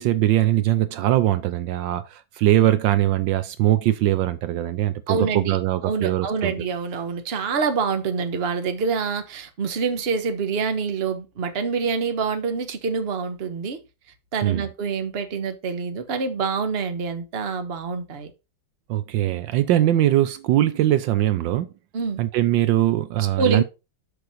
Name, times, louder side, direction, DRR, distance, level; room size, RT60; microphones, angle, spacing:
voice 1, 0.0-6.5 14.4-14.6 18.9-21.7 22.2-23.6, right 13 dB, 80° right, 1.3 m, -21 dB
voice 2, 5.1-5.6 5.8-13.8 14.3-18.3 21.9-22.2 23.4-23.6, right 5 dB, 40° right, 1.1 m, -26 dB
6.8 x 6.2 x 4.1 m
omnidirectional pair, 2.1 m